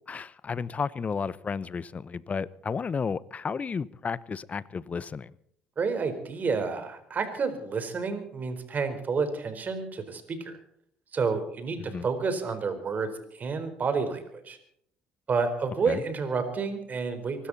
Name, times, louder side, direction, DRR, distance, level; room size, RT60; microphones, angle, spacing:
voice 1, 0.1-5.3 11.8-12.1 15.9-16.0, left 5 dB, 35° left, 0.8 m, -33 dB
voice 2, 5.8-10.5 11.1-14.6 15.3-17.5, right 4 dB, 40° right, 4.2 m, -30 dB
24.5 x 13.0 x 4.2 m
supercardioid pair, 70°, 4 cm